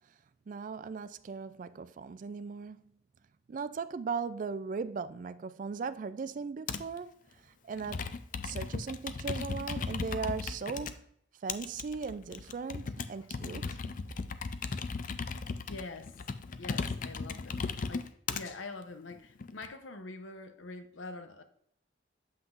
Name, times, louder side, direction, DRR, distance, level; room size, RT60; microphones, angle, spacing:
voice 1, 0.5-2.9 3.5-8.1 8.4-11.0 11.4-13.7 14.1-14.2, right 5 dB, 45° right, 0.3 m, -38 dB
Computer keyboard, 6.7-7.0 7.7-10.9 11.5-18.4 19.1-19.7, left 4 dB, 45° left, 0.4 m, -36 dB
voice 2, 15.7-16.2 16.6-21.4, left 3 dB, 90° left, 0.8 m, -45 dB
7.6 x 5.8 x 2.5 m
head